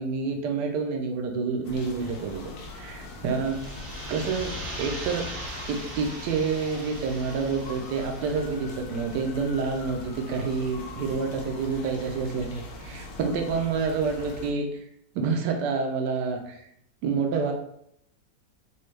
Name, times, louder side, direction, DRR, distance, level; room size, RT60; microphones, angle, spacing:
voice 1, 0.0-2.4 2.7-3.7 4.1-5.4 5.7-14.8 15.1-16.7 17.0-17.5, right 5 dB, 75° right, 3 dB, 1.1 m, -28 dB
sound 1, 1.6-14.5, left 2 dB, 90° left, 1.4 m, -41 dB
sound 2, 3.3-9.0, equal, 90° right, 1.8 m, -39 dB
4.2 x 2.3 x 3.1 m, 0.74 s
omnidirectional pair, 2.0 m